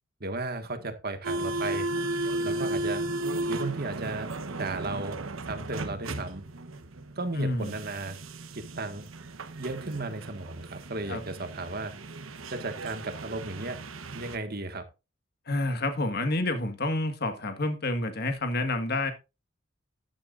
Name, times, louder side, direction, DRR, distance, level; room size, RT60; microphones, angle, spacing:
voice 1, 0.2-1.9 2.2-3.0 3.5-6.4 7.2-8.2 8.5-9.1 9.6-11.9 12.5-13.8 14.1-14.9, right 2 dB, 50° right, 1.7 m, -35 dB
sound 1, 1.2-14.4, right 2 dB, 85° right, 1.2 m, -35 dB
voice 2, 7.4-7.7 11.1-11.2 15.5-19.1, left 2 dB, 50° left, 1.7 m, -29 dB
12.0 x 10.5 x 2.5 m
head